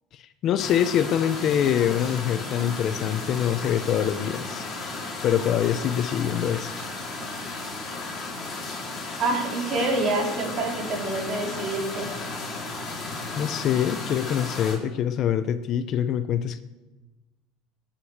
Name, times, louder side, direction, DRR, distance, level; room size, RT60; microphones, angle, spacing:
voice 1, 0.1-4.7 5.2-6.8 13.4-16.6, left 9 dB, 40° left, 11 dB, 0.8 m, -24 dB
sound 1, 0.6-14.8, left 3 dB, 20° left, 4.7 m, -34 dB
voice 2, 9.2-12.1, right 2 dB, 40° right, 0 dB, 4.3 m, -27 dB
20.5 x 10.5 x 6.7 m, 1.1 s
cardioid pair, 145°, 0 cm